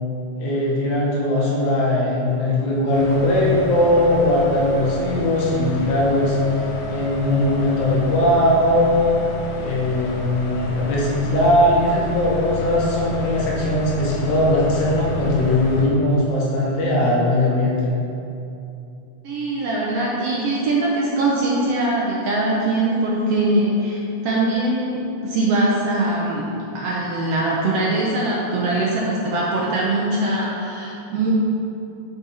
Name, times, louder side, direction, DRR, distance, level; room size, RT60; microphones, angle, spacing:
voice 1, 0.4-6.4 6.9-9.1 9.6-17.9, left 1 dB, 75° left, -5 dB, 2.7 m, -19 dB
sound 1, 2.9-15.9, left 2 dB, 90° left, 2.4 m, -31 dB
voice 2, 19.2-26.5 26.7-31.3, right 2 dB, 75° right, -4 dB, 1.5 m, -22 dB
7.7 x 5.1 x 4.2 m, 2.8 s
omnidirectional pair, 3.5 m